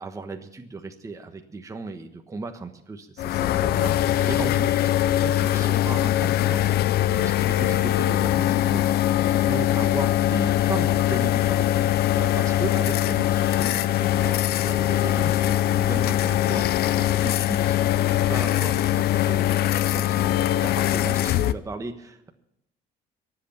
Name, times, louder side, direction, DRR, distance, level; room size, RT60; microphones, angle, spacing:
voice 1, 0.0-4.9 5.2-8.8 9.2-11.7 12.1-17.8 18.1-22.3, right 3 dB, 20° right, 4 dB, 1.3 m, -36 dB
sound 1, 3.2-21.5, left 13 dB, 70° left, 0.6 m, -22 dB
23.0 x 8.1 x 7.1 m, 0.79 s
cardioid pair, 110°, 17 cm